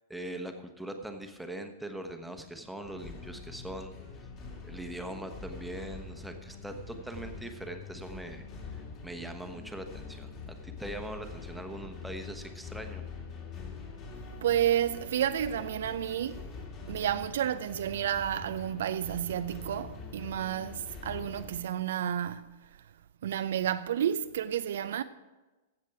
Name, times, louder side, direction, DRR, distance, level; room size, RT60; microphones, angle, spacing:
voice 1, 0.1-4.0 4.6-8.5 8.7-13.0, right 1 dB, ahead, 1.1 m, -41 dB
sound 1, 2.8-21.6, left 4 dB, 35° left, 2.7 m, -44 dB
voice 2, 14.4-16.5 16.9-22.6 23.2-25.0, right 10 dB, 60° right, 0.4 m, -31 dB
15.0 x 7.4 x 4.8 m
figure-of-eight pair, 100°, 0 cm